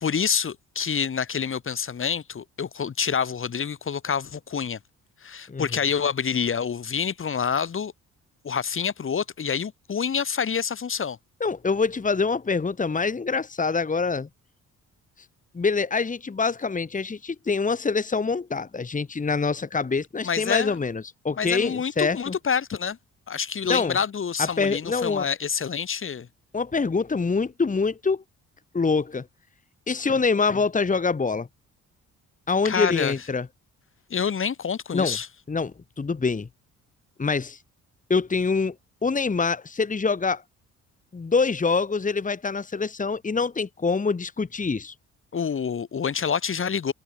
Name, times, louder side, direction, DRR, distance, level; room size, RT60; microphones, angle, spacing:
voice 1, 0.0-4.8 5.2-7.9 8.4-11.2 20.2-20.8 21.4-23.0 23.3-26.3 32.6-33.1 34.1-35.3 45.3-46.9, left 7 dB, 45° left, 2.9 m, -27 dB
voice 2, 11.4-14.3 15.5-22.3 23.7-24.0 24.4-25.3 26.5-28.2 28.7-29.2 29.9-31.5 32.5-33.5 34.9-35.2 35.5-36.5 37.2-37.6 38.1-38.7 39.0-40.4 41.1-44.9, left 4 dB, 25° left, 2.4 m, -25 dB
cardioid pair, 90°, 30 cm